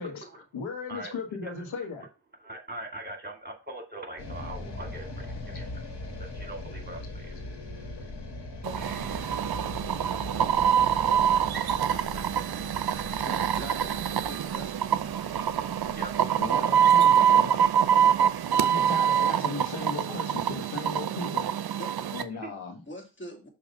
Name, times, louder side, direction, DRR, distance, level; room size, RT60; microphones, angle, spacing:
voice 1, 0.0-2.1 16.4-17.6 18.6-21.5 22.1-22.8, left 4 dB, 75° left, 1.4 m, -37 dB
voice 2, 2.4-5.8 6.2-7.4 8.6-9.7 15.9-16.1 22.3-22.5, right 1 dB, 20° right, 2.1 m, -42 dB
sound 1, 4.2-18.4, left 2 dB, 55° left, 1.8 m, -41 dB
sound 2, 8.6-22.2, right 9 dB, 50° right, 0.7 m, -25 dB
voice 3, 13.2-14.9 21.8-22.0 22.9-23.5, left 1 dB, 25° left, 2.1 m, -43 dB
6.4 x 2.9 x 5.2 m
cardioid pair, 55°, 47 cm